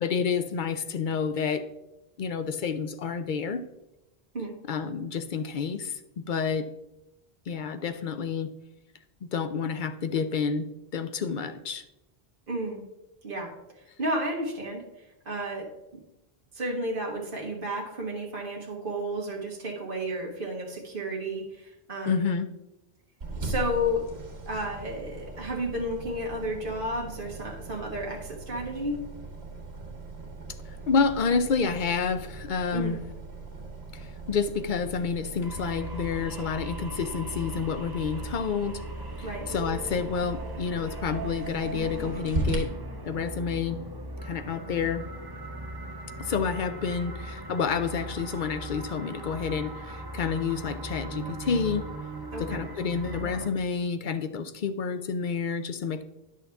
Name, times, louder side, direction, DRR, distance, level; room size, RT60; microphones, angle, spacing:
voice 1, 0.0-1.6 2.2-3.6 4.7-6.7 7.5-8.5 9.2-10.7 10.9-11.8 22.1-22.5 30.9-33.0 33.9-38.8 39.2-42.7 43.0-43.8 44.2-45.0 46.2-51.9 52.4-56.0, left 5 dB, 55° left, 10 dB, 0.6 m, -29 dB
voice 2, 12.5-12.8 13.2-13.5 14.0-14.8 15.2-15.7 16.5-22.3 23.4-24.1 24.5-29.0 32.7-33.0 39.2-39.5 52.3-52.6, equal, 55° right, 0 dB, 1.5 m, -32 dB
sound 1, 23.2-42.6, right 2 dB, 80° right, 1.8 m, -39 dB
sound 2, 35.4-53.5, right 1 dB, 25° right, 0.8 m, -39 dB
10.0 x 6.4 x 3.4 m, 0.92 s
omnidirectional pair, 1.1 m